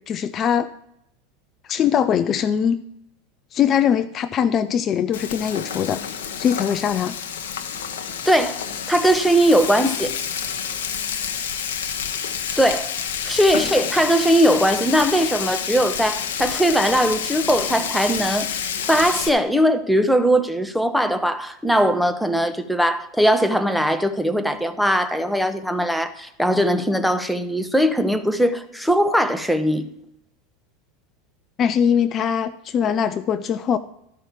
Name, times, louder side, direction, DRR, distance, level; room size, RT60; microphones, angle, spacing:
voice 1, 0.1-0.7 1.6-2.8 3.5-6.0 6.4-7.2 31.6-33.8, left 8 dB, 40° left, 0.5 m, -21 dB
Frying (food), 5.1-19.3, left 7 dB, 75° left, 1.0 m, -29 dB
voice 2, 8.2-8.6 8.9-10.1 12.6-12.9 13.2-29.9, equal, ahead, 1.0 m, -20 dB
12.5 x 5.6 x 7.3 m
hypercardioid pair, 85°, 0 cm